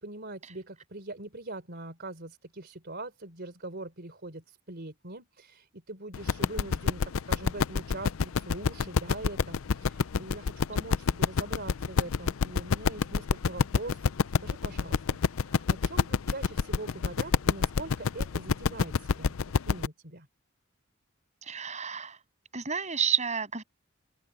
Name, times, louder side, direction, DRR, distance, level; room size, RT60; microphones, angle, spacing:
voice 1, 0.0-14.1 14.4-19.4 19.7-20.3, right 2 dB, 55° right, 3.6 m, -42 dB
sound 1, 6.1-19.9, left 5 dB, 75° left, 0.5 m, -27 dB
voice 2, 21.4-22.2 22.5-23.6, right 6 dB, 35° right, 7.6 m, -30 dB
open air
head